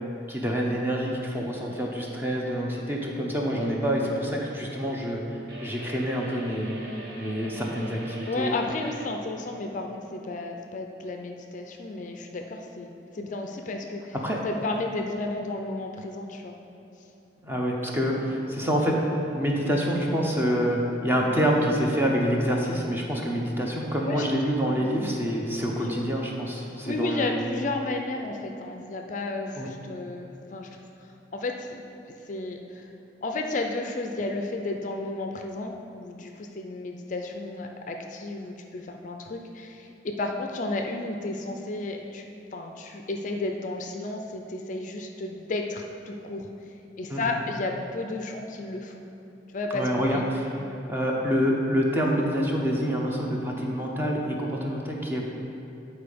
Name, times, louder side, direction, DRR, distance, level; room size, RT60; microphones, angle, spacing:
voice 1, 0.3-5.2 5.6-6.8 7.2-8.5 14.2-14.4 17.4-19.0 19.3-27.4 29.6-29.7 47.1-47.4 49.7-55.2, equal, 10° right, -2 dB, 0.8 m, -27 dB
sound 1, 5.5-9.1, equal, 55° right, 1.2 m, -43 dB
voice 2, 8.3-14.2 14.4-16.5 24.0-24.3 24.6-25.2 25.6-26.1 26.9-31.7 32.3-32.9 33.2-42.2 42.5-46.5 47.0-49.0 49.5-50.2, left 2 dB, 45° left, 3 dB, 0.4 m, -33 dB
8.8 x 4.1 x 5.1 m, 2.8 s
head